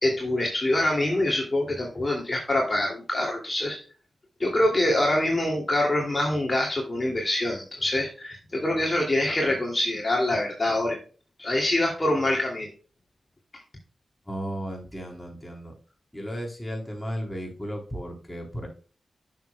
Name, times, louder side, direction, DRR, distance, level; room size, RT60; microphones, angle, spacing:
voice 1, 0.0-3.8 4.4-11.0 11.4-12.7, left 1 dB, 35° left, -1 dB, 2.6 m, -25 dB
voice 2, 14.3-15.7 16.1-18.7, equal, 10° left, 0 dB, 3.8 m, -34 dB
9.2 x 6.8 x 2.3 m, 0.37 s
cardioid pair, 45°, 0 cm